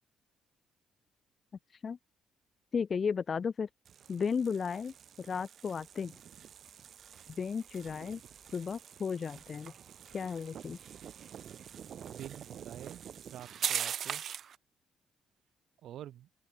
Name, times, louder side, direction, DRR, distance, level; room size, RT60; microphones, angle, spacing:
voice 1, 2.7-3.7 4.1-6.1 7.4-8.2 8.5-9.7 10.1-10.8, left 6 dB, 45° left, 2.6 m, -34 dB
sound 1, 3.8-14.6, right 9 dB, 60° right, 4.2 m, -43 dB
voice 2, 12.1-13.0 13.3-14.2 15.8-16.3, right 12 dB, 75° right, 4.0 m, -47 dB
open air
cardioid pair, 90°, 0 cm